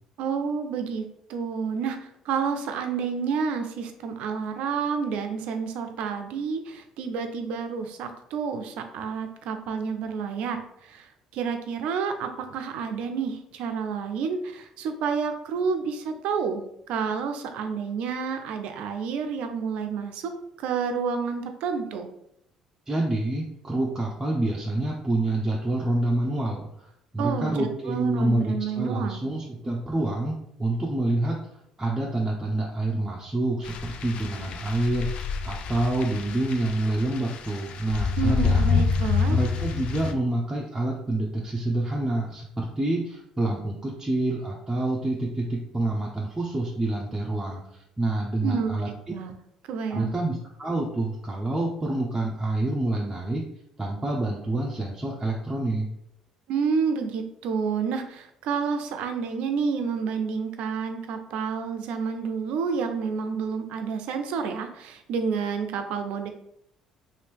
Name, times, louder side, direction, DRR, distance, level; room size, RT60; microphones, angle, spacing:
voice 1, 0.2-1.0 1.3-20.3 20.6-22.1 27.2-29.2 38.2-39.4 48.4-49.3 49.7-50.2 56.5-66.3, right 6 dB, 70° right, 6 dB, 0.5 m, -29 dB
voice 2, 22.9-26.9 27.1-31.4 31.8-38.8 39.3-48.9 49.9-53.4 53.8-55.9, right 2 dB, 15° right, -3 dB, 0.6 m, -27 dB
sound 1, 33.6-40.1, left 5 dB, 65° left, 0.4 m, -27 dB
2.9 x 2.6 x 3.3 m, 0.76 s
hypercardioid pair, 60°, 2 cm